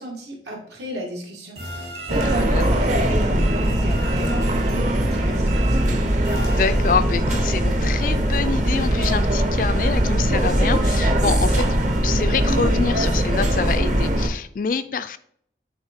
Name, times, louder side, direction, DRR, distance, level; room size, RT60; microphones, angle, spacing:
voice 1, 0.0-1.6 2.1-6.1, right 1 dB, 75° right, 2.0 m, -33 dB
sound 1, 1.6-7.3, right 2 dB, 60° right, 2.8 m, -35 dB
sound 2, 2.1-14.3, right 1 dB, 45° right, 0.9 m, -20 dB
voice 2, 6.4-11.8 12.0-15.2, left 5 dB, 50° left, 0.4 m, -26 dB
8.9 x 3.6 x 3.6 m
head